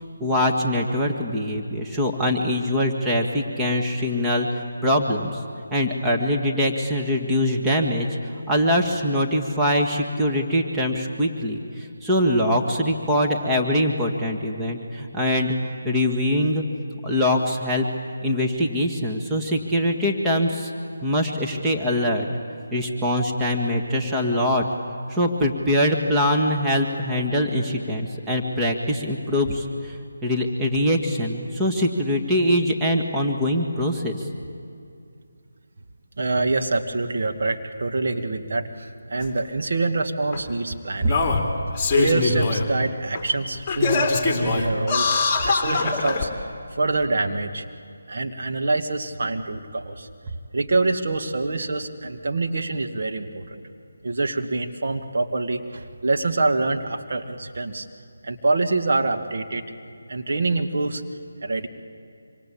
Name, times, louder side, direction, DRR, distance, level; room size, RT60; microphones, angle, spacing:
voice 1, 0.2-5.4 5.7-8.1 8.5-15.6 15.8-16.6 17.0-17.9 18.2-20.7 21.0-22.3 22.7-24.6 25.1-30.0 30.2-34.3, left 1 dB, 10° right, -1 dB, 1.8 m, -23 dB
voice 2, 36.2-41.2 41.9-46.3 46.7-47.7 48.1-50.1 50.5-53.6 54.0-57.9 58.2-59.6 60.1-61.0 61.4-61.7, right 3 dB, 55° right, 5 dB, 1.9 m, -25 dB
Singing, 39.2-39.3 40.3-40.4 41.0-42.7 43.1-43.2 43.7-46.3 47.0-47.1, left 4 dB, 15° left, 3.1 m, -22 dB
25.5 x 25.5 x 8.7 m, 2.5 s
figure-of-eight pair, 160°, 0 cm